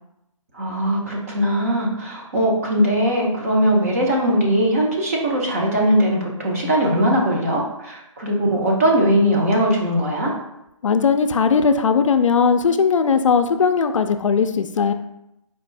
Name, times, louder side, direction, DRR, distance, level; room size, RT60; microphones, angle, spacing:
voice 1, 0.5-10.3, equal, 25° right, -2 dB, 0.7 m, -20 dB
voice 2, 10.8-14.9, left 5 dB, 70° left, 8 dB, 0.4 m, -18 dB
4.3 x 2.5 x 3.2 m, 0.85 s
hypercardioid pair, 165°, 17 cm